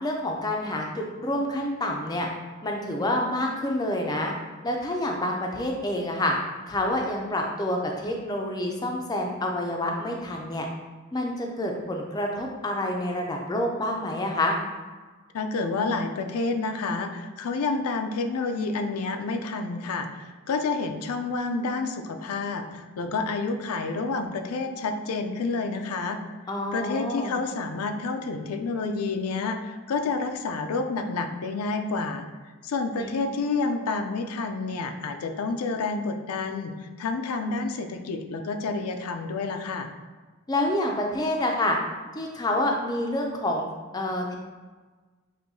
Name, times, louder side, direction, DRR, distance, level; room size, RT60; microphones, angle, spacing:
voice 1, 0.0-2.3 2.6-4.3 4.6-6.3 6.7-10.7 11.1-14.6 26.5-27.4 33.0-33.2 40.5-41.8 42.1-43.7 43.9-44.3, left 1 dB, 20° left, 1 dB, 0.4 m, -28 dB
voice 2, 15.3-26.2 26.7-32.2 32.6-39.9, left 3 dB, 85° left, 6 dB, 0.4 m, -29 dB
6.2 x 2.6 x 2.6 m, 1.3 s
head